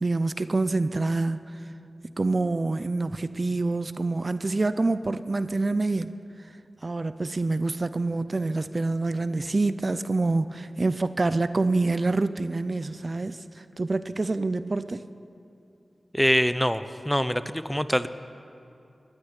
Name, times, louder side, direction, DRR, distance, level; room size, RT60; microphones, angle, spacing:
voice 1, 0.0-1.5 2.2-6.1 6.8-15.0, right 3 dB, 45° right, 13 dB, 0.5 m, -26 dB
voice 2, 16.1-18.1, equal, 5° left, 13 dB, 0.5 m, -24 dB
15.0 x 9.8 x 10.0 m, 2.6 s
wide cardioid pair, 70°, 0 cm